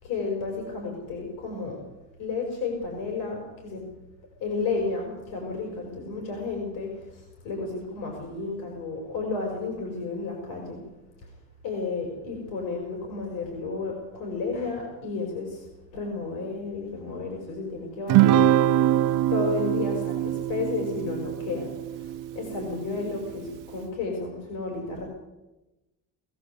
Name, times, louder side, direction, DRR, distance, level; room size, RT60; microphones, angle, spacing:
voice 1, 0.0-1.8 2.2-3.8 4.4-10.8 11.6-15.6 15.9-18.4 19.3-21.7 22.0-25.1, left 4 dB, 85° left, 1 dB, 6.2 m, -32 dB
Guitar, 18.1-22.7, right 12 dB, 70° right, 0.8 m, -23 dB
22.5 x 15.5 x 8.3 m, 1.0 s
cardioid pair, 155°, 32 cm